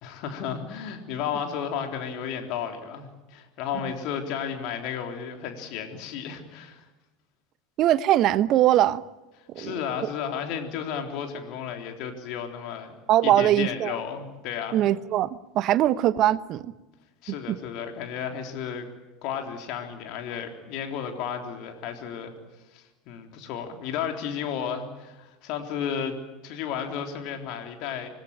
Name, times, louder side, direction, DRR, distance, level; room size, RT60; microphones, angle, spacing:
voice 1, 0.0-6.8 9.6-14.8 17.2-18.9 19.2-22.3 22.7-26.2 26.4-28.1, left 8 dB, 55° left, 3.8 m, -33 dB
voice 2, 7.8-9.0 9.5-9.8 13.1-13.9 14.7-16.7 17.5-17.6, right 13 dB, 45° right, 1.0 m, -21 dB
26.5 x 20.0 x 9.0 m
figure-of-eight pair, 75°, 0 cm